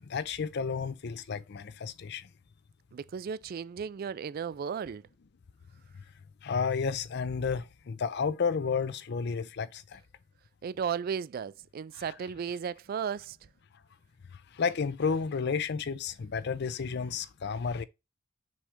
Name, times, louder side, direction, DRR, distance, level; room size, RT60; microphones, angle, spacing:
voice 1, 0.0-2.3 6.4-10.0 14.5-17.8, left 5 dB, 55° left, 0.5 m, -31 dB
voice 2, 2.9-5.0 10.6-13.4, right 7 dB, 45° right, 0.3 m, -35 dB
6.2 x 3.3 x 5.0 m
head